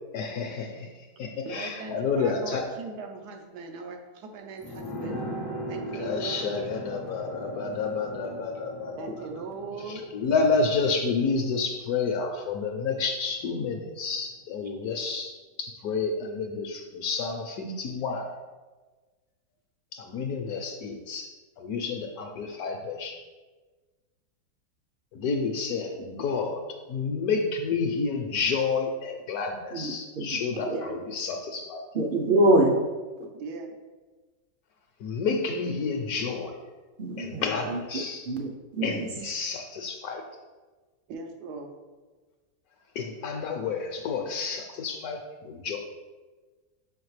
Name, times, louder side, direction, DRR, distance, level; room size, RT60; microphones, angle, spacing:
voice 1, 0.1-2.7 5.9-9.3 9.8-18.3 19.9-23.2 25.1-31.8 35.0-36.6 37.2-38.3 38.8-40.2 42.9-45.8, left 4 dB, 75° left, 3 dB, 1.0 m, -30 dB
voice 2, 1.4-5.2 5.7-6.6 9.0-10.0 30.7-31.0 33.1-33.7 41.1-41.7, right 4 dB, 90° right, 3 dB, 1.3 m, -39 dB
sound 1, 4.6-13.9 14.2-14.3, right 1 dB, 35° left, 0.4 m, -40 dB
voice 3, 29.7-30.3 30.7-30.8 31.9-32.7 37.0-37.4 37.7-37.8 38.3-39.1, right 1 dB, 70° right, 1 dB, 0.5 m, -24 dB
5.7 x 5.3 x 3.2 m, 1.3 s
omnidirectional pair, 1.7 m